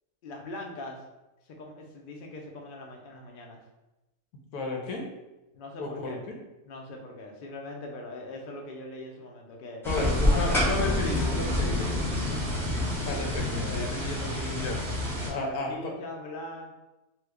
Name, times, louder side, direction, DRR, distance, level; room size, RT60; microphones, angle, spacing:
voice 1, 0.2-1.0 1.4-3.6 5.5-6.2 6.6-9.8 10.3-10.6 13.5-13.9 15.3-16.8, left 1 dB, 65° left, 1 dB, 0.5 m, -41 dB
voice 2, 4.5-5.0 5.8-6.4 9.8-11.9 13.0-14.8 15.3-15.9, left 2 dB, 80° left, 1 dB, 1.1 m, -33 dB
sound 1, 9.8-15.3, left 1 dB, 5° left, 0.4 m, -28 dB
sound 2, 10.3-15.5, right 1 dB, 85° right, 0.4 m, -48 dB
3.0 x 2.2 x 3.4 m, 1.0 s
omnidirectional pair, 1.6 m